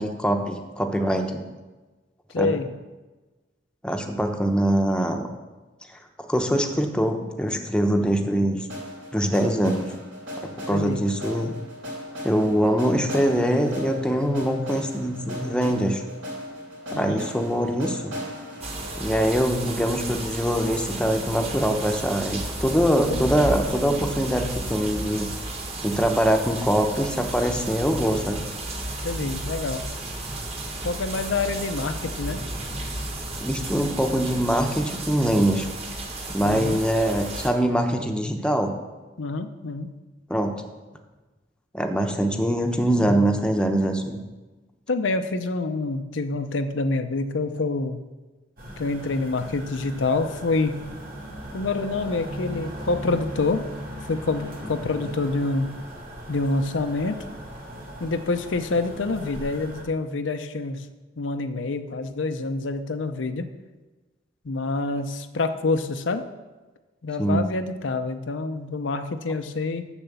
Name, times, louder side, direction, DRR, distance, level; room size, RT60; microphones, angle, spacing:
voice 1, 0.0-1.5 2.4-2.6 3.8-5.3 6.3-8.6 9.1-9.9 10.4-11.5 12.2-16.0 16.9-18.1 19.0-25.3 25.8-28.5 33.4-35.7 36.3-38.7 40.3-40.6 41.7-44.2 54.6-54.7 67.2-67.5, equal, 5° left, 4 dB, 0.8 m, -23 dB
voice 2, 2.3-2.7 10.7-11.0 16.9-17.2 23.1-23.2 29.0-29.8 30.8-32.4 36.4-36.8 39.2-39.9 43.0-43.2 44.9-48.0 48.8-50.8 51.5-53.6 54.1-55.7 56.3-57.2 58.0-60.8 61.2-63.5 64.4-66.3 67.0-69.8, left 3 dB, 85° left, 8 dB, 0.6 m, -27 dB
sound 1, 8.7-20.6, equal, 80° right, 3.7 m, -38 dB
sound 2, 18.6-37.5, right 2 dB, 35° right, 1.4 m, -33 dB
sound 3, 48.6-59.8, equal, 55° right, 2.4 m, -38 dB
7.1 x 6.9 x 6.9 m, 1.2 s
head